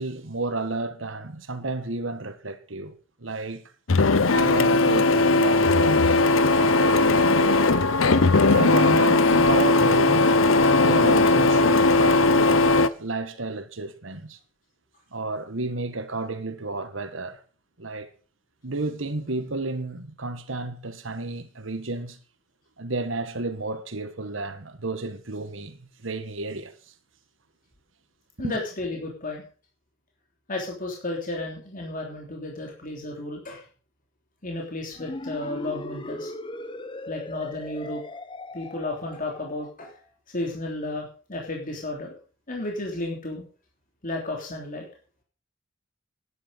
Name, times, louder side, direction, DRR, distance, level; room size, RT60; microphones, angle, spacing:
voice 1, 0.0-2.9 3.2-3.6 4.3-7.6 8.4-12.6 13.0-14.4 15.1-17.4 17.8-18.1 18.6-22.2 22.8-26.7 28.4-28.6, right 2 dB, 70° right, 1.6 m, -32 dB
Printer, 3.9-12.9, left 3 dB, 75° left, 0.9 m, -18 dB
voice 2, 28.4-29.4 30.5-33.6 34.4-36.3 37.1-38.0 38.5-40.0 40.3-42.1 42.5-43.4 44.0-44.9, left 2 dB, 45° left, 3.4 m, -33 dB
sound 1, 34.9-39.7, left 2 dB, 25° left, 1.0 m, -38 dB
11.5 x 10.5 x 5.3 m
head